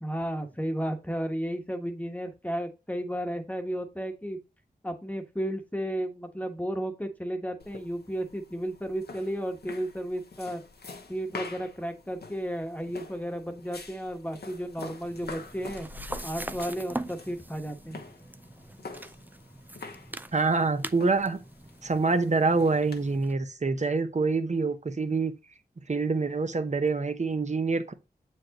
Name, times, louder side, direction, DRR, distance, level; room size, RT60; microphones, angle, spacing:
voice 1, 0.0-4.4 4.8-10.6 11.1-15.9 16.2-18.0, equal, 10° left, 1.2 m, -33 dB
sound 1, 7.6-23.2, left 3 dB, 75° left, 1.1 m, -46 dB
sound 2, 15.0-23.3, right 1 dB, 10° right, 0.4 m, -42 dB
voice 2, 20.3-21.4 21.8-25.3 25.9-27.9, right 3 dB, 45° right, 0.9 m, -26 dB
7.6 x 4.6 x 3.0 m
wide cardioid pair, 60°, 17 cm